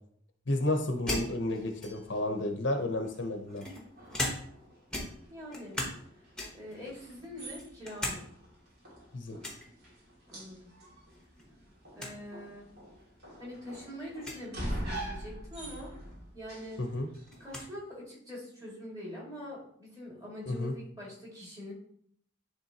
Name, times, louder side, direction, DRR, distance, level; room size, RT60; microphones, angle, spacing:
voice 1, 0.5-3.6 9.1-9.4 16.8-17.1 20.5-20.7, left 1 dB, 60° left, 5 dB, 0.7 m, -31 dB
sound 1, 1.1-2.2 3.0-4.7 4.9-6.0 6.4-6.8 7.2-8.2 8.5-8.6 9.4-9.7 11.1-11.4 11.7-11.8 12.0-12.2 13.0-13.1 14.2-14.4 16.1-16.2 16.5-17.7, left 1 dB, 5° left, 1.0 m, -38 dB
sound 2, 1.4-17.6, right 1 dB, 50° right, 2.5 m, -45 dB
voice 2, 5.3-5.8 6.5-8.3 10.3-10.7 11.9-12.7 13.4-15.9 16.3-16.8 17.4-21.7, left 1 dB, 20° right, -5 dB, 2.3 m, -44 dB
10.0 x 3.4 x 2.9 m, 0.64 s
head